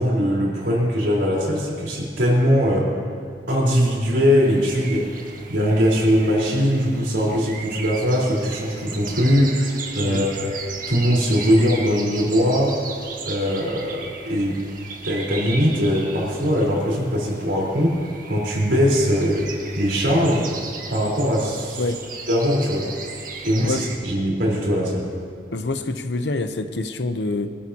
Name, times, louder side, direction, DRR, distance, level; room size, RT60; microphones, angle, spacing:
voice 1, 0.0-2.9 3.5-5.1 5.5-10.5 10.9-12.8 13.2-14.6 15.0-18.0 18.3-19.5 19.8-20.5 20.9-21.8 22.3-22.9 23.4-25.1, equal, 80° right, -3 dB, 4.2 m, -21 dB
sound 1, 4.4-24.0, right 4 dB, 50° right, 1.6 m, -36 dB
voice 2, 25.5-27.5, left 2 dB, 70° left, 9 dB, 0.8 m, -26 dB
24.5 x 12.5 x 2.9 m, 2.2 s
head